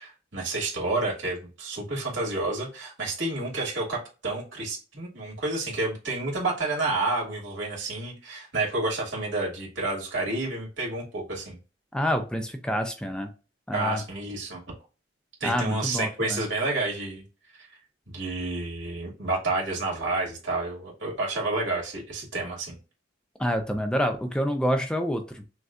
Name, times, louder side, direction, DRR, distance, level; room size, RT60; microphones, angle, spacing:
voice 1, 0.0-11.6 13.7-14.6 15.4-17.2 18.1-22.8, right 2 dB, 80° right, -3 dB, 2.1 m, -30 dB
voice 2, 11.9-13.3 13.7-14.0 15.4-16.4 23.4-25.4, equal, 5° left, 6 dB, 0.4 m, -27 dB
6.2 x 2.3 x 2.4 m, 0.34 s
head